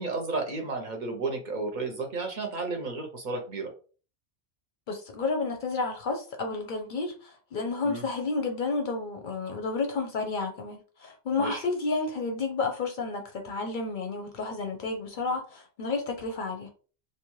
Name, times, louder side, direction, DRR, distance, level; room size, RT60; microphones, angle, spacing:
voice 1, 0.0-3.7 7.8-8.0 11.4-11.6, right 3 dB, 55° right, 2 dB, 0.7 m, -32 dB
voice 2, 4.9-16.7, left 3 dB, 60° left, 4 dB, 0.6 m, -31 dB
2.6 x 2.2 x 3.0 m, 0.38 s
omnidirectional pair, 1.1 m